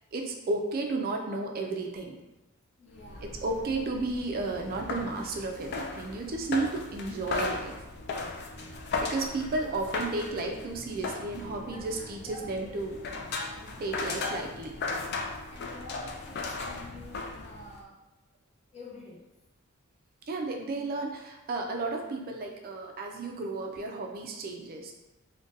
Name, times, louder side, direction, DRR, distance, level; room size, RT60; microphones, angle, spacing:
voice 1, 0.1-2.2 3.2-7.8 9.0-13.0 13.8-14.8 20.3-24.9, right 3 dB, 45° right, 2 dB, 0.4 m, -33 dB
voice 2, 2.8-3.3 6.5-6.6 8.1-8.9 9.5-9.9 10.2-10.6 10.8-11.2 11.6-12.8 13.5-13.9 15.5-18.0 18.7-19.2, left 1 dB, 30° left, -3 dB, 0.7 m, -49 dB
sound 1, 2.9-17.8, left 3 dB, 50° left, 0.4 m, -37 dB
3.8 x 2.2 x 2.6 m, 1.0 s
head